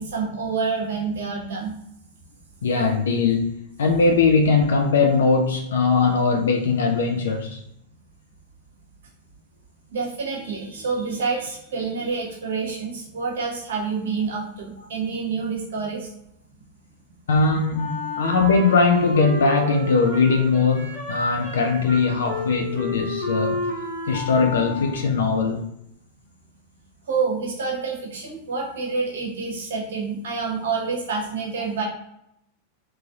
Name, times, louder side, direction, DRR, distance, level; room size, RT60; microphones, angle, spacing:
voice 1, 0.0-1.7 9.9-16.1 27.1-31.9, right 4 dB, 60° right, -2 dB, 1.1 m, -28 dB
voice 2, 2.6-7.6 17.3-23.6 24.1-25.6, left 4 dB, 65° left, 3 dB, 0.4 m, -20 dB
Wind instrument woodwind instrument, 17.7-25.3, left 2 dB, 20° left, 1.1 m, -31 dB
3.6 x 3.1 x 2.4 m, 0.79 s
figure-of-eight pair, 90°, 0 cm